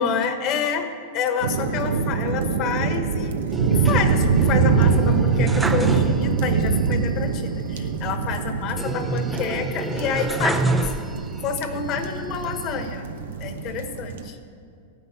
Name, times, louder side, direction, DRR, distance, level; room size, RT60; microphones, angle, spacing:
voice 1, 0.0-11.0 11.4-13.1 13.4-14.4, left 6 dB, 40° left, 7 dB, 1.3 m, -28 dB
sound 1, 1.4-14.3, right 5 dB, 75° right, 0.9 m, -24 dB
sound 2, 3.5-6.6 6.9-7.0 8.8-11.5 12.0-12.9, right 2 dB, 10° right, 0.6 m, -28 dB
15.5 x 9.5 x 5.8 m, 2.4 s
hypercardioid pair, 125°, 0 cm